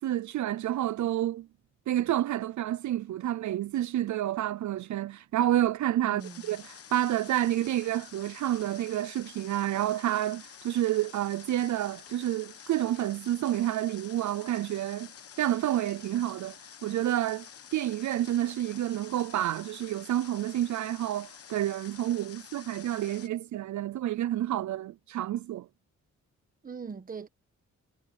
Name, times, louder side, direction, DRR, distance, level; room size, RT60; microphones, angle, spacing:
voice 1, 0.0-1.5 1.9-15.1 15.4-16.6 16.8-17.5 17.7-25.7, right 13 dB, 75° right, 0.5 m, -29 dB
voice 2, 6.0-6.6 26.6-27.3, right 5 dB, 30° right, 1.3 m, -41 dB
Water, 6.2-23.3, left 8 dB, 50° left, 1.2 m, -49 dB
wide cardioid pair, 175°, 29 cm